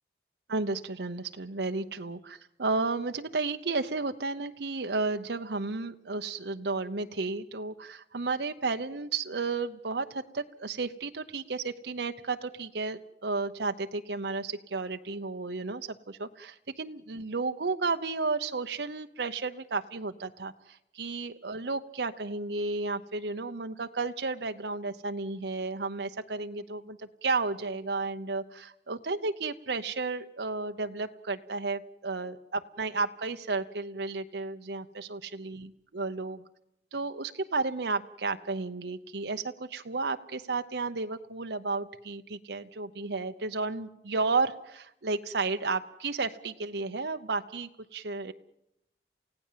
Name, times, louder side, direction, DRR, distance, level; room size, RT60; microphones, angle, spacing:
voice 1, 0.5-36.4 36.9-48.3, right 3 dB, 70° right, 7 dB, 0.9 m, -33 dB
29.0 x 17.0 x 7.5 m, 0.81 s
head